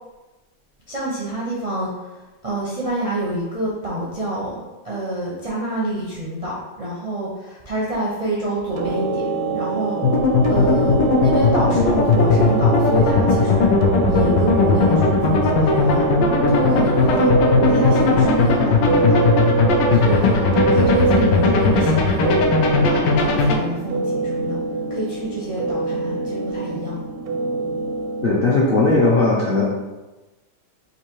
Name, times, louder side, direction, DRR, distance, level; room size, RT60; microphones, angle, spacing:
voice 1, 0.9-1.9 2.4-4.6 4.8-10.0 10.5-13.7 14.1-16.0 16.5-19.2 19.9-22.4 22.9-24.6 24.9-27.0, right 1 dB, 50° right, -6 dB, 0.4 m, -26 dB
sound 1, 8.7-28.4, right 4 dB, 80° right, 1.2 m, -24 dB
sound 2, 10.0-23.5, left 4 dB, 85° left, 1.3 m, -18 dB
voice 2, 28.2-29.6, left 2 dB, 70° left, -6 dB, 0.5 m, -17 dB
4.0 x 2.7 x 4.5 m, 1.1 s
omnidirectional pair, 1.9 m